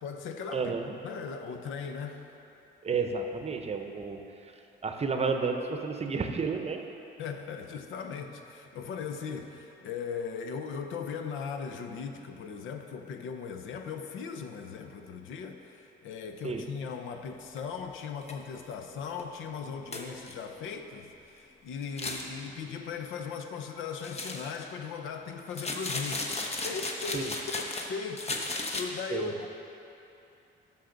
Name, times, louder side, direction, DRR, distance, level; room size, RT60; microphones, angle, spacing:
voice 1, 0.0-0.7 1.0-2.3 7.2-26.3 26.6-29.5, left 6 dB, 85° left, 5 dB, 0.7 m, -38 dB
voice 2, 0.5-0.9 2.8-4.5 4.8-6.8 16.4-16.7 27.1-27.3 29.1-29.3, right 4 dB, 30° right, 5 dB, 0.7 m, -31 dB
sound 1, 17.6-17.7 18.2-18.3 18.7-18.8 19.2-19.3 19.9-20.3 21.8-22.3 24.0-24.6 25.5-27.9 28.2-28.8, left 2 dB, 30° left, 0.9 m, -35 dB
13.0 x 5.5 x 3.9 m, 2.9 s
cardioid pair, 90°, 20 cm